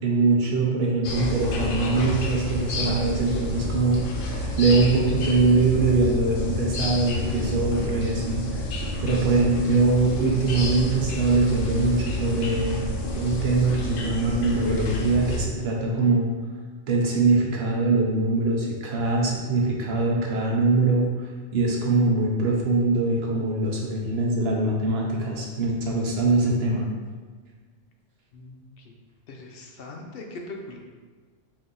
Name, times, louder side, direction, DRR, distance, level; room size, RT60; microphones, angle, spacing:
voice 1, 0.0-8.6 9.0-12.8 13.2-16.3 16.9-26.9, right 3 dB, 60° right, -2 dB, 0.9 m, -23 dB
sound 1, 1.0-15.4, left 1 dB, 85° left, 1.0 m, -29 dB
voice 2, 28.3-29.0 29.3-30.8, left 2 dB, 60° left, 1 dB, 0.7 m, -40 dB
4.1 x 2.7 x 3.7 m, 1.5 s
omnidirectional pair, 1.3 m